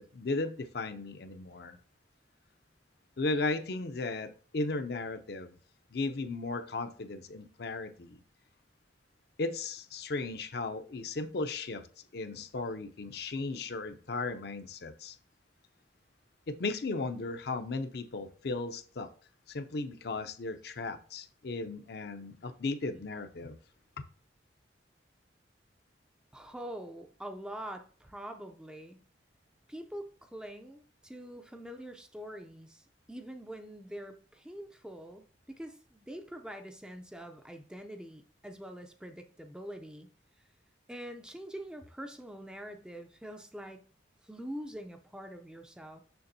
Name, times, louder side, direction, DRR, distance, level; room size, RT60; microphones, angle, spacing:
voice 1, 0.0-1.8 3.2-5.5 5.9-8.2 9.4-11.9 12.1-15.2 16.5-19.1 19.5-23.6, left 3 dB, 55° left, 0.5 m, -36 dB
voice 2, 26.3-29.0 29.7-40.1 40.9-43.8 44.2-46.0, equal, 5° right, 0.4 m, -44 dB
6.9 x 6.0 x 2.6 m
head